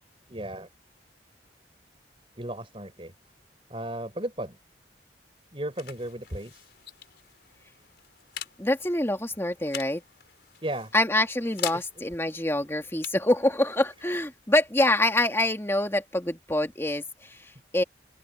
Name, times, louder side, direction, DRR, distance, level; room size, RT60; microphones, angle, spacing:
voice 1, 0.3-0.7 2.4-3.1 3.7-4.6 5.5-6.6 10.6-10.9 11.7-11.8, right 1 dB, 30° right, 5.1 m, -35 dB
sound 1, 5.0-16.3, left 10 dB, 65° left, 4.8 m, -44 dB
voice 2, 8.6-10.0 10.9-17.8, left 1 dB, 15° left, 2.3 m, -25 dB
open air
head